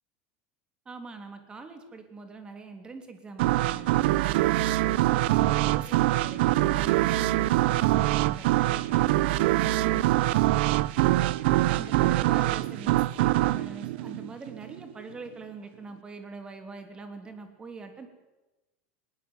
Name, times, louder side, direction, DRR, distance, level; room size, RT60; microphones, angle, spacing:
voice 1, 0.8-10.3 11.7-18.1, right 4 dB, 15° right, 7 dB, 3.1 m, -43 dB
sound 1, 3.4-14.9, right 16 dB, 75° right, 0.9 m, -24 dB
20.0 x 19.0 x 9.6 m, 1.0 s
supercardioid pair, 165°, 6 cm